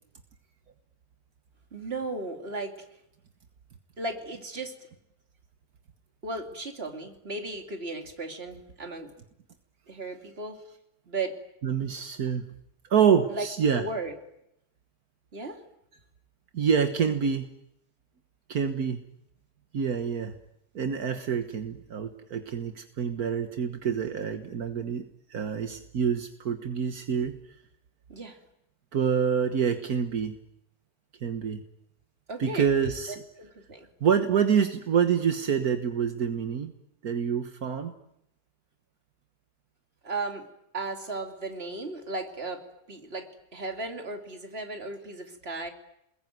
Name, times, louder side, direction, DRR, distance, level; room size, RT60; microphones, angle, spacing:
voice 1, 1.7-2.7 4.0-4.7 6.2-9.1 9.9-10.6 11.1-11.4 13.3-13.5 13.7-14.1 15.3-15.6 28.1-28.4 32.3-32.7 33.4-33.9 40.0-40.5 40.7-42.6 42.9-45.7, right 3 dB, 40° right, 4 dB, 3.0 m, -35 dB
voice 2, 11.6-12.5 12.9-13.8 16.5-17.5 18.5-19.0 19.7-20.3 20.8-27.4 28.9-30.4 31.2-31.6 32.4-33.2 34.0-36.7 37.0-37.9, right 7 dB, 75° right, 7 dB, 1.8 m, -26 dB
29.0 x 21.0 x 9.3 m, 0.82 s
omnidirectional pair, 1.6 m